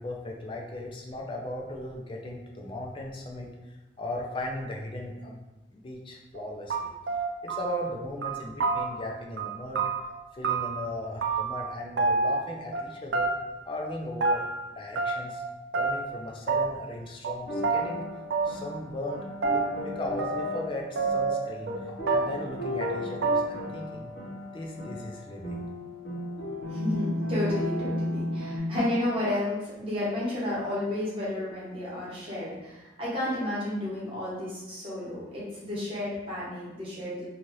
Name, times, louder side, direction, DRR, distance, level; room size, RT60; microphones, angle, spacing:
voice 1, 0.0-3.5 4.0-5.4 5.7-6.9 7.4-9.8 10.3-13.3 13.7-14.4 14.7-15.4 15.7-18.1 18.4-21.7 22.1-24.1 24.5-25.7, left 1 dB, 30° left, 0 dB, 0.4 m, -37 dB
sound 1, 6.3-6.4 6.7-7.9 8.2-9.1 9.4-10.9 11.2-11.7 12.0-12.8 13.1-13.6 13.9-14.6 15.0-15.5 15.7-16.2 16.5-16.9 17.2-17.3 17.6-17.8 18.3-18.8 19.1-20.7 21.0-21.8 22.1-22.5 22.8-23.0 23.2-23.7, right 4 dB, 70° right, 0.3 m, -28 dB
sound 2, 17.5-28.6, left 1 dB, 60° left, 0.8 m, -35 dB
voice 2, 26.7-37.3, left 1 dB, 30° right, -8 dB, 1.0 m, -32 dB
2.6 x 2.4 x 3.1 m, 1.0 s
head